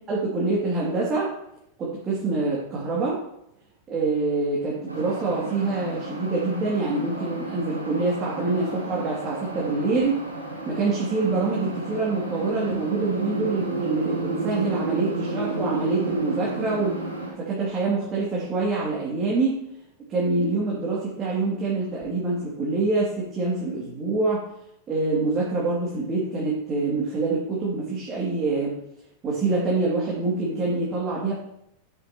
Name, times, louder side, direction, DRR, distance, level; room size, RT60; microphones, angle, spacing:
voice 1, 0.1-1.3 1.8-3.2 3.9-10.2 10.7-17.0 17.4-19.6 20.1-24.4 24.9-28.7 29.2-31.3, right 3 dB, 25° right, -5 dB, 2.7 m, -25 dB
sound 1, 4.9-17.3, right 2 dB, 85° right, 4.3 m, -31 dB
12.0 x 8.4 x 3.0 m, 0.77 s
figure-of-eight pair, 90°, 0 cm